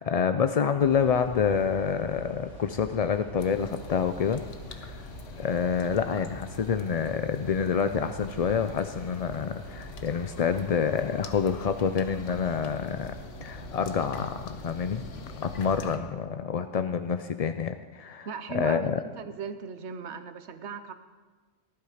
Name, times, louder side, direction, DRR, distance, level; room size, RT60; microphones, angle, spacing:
voice 1, 0.0-4.4 4.7-5.1 5.4-13.1 13.4-15.0 15.4-18.3 18.5-19.0, left 6 dB, 55° left, 9 dB, 0.4 m, -27 dB
sound 1, 0.8-16.0, right 2 dB, 30° left, 3.0 m, -45 dB
sound 2, 3.4-16.0, left 5 dB, 75° left, 1.3 m, -44 dB
voice 2, 18.2-20.9, right 6 dB, 65° right, 10 dB, 1.2 m, -37 dB
18.5 x 11.5 x 5.0 m, 1.4 s
omnidirectional pair, 1.3 m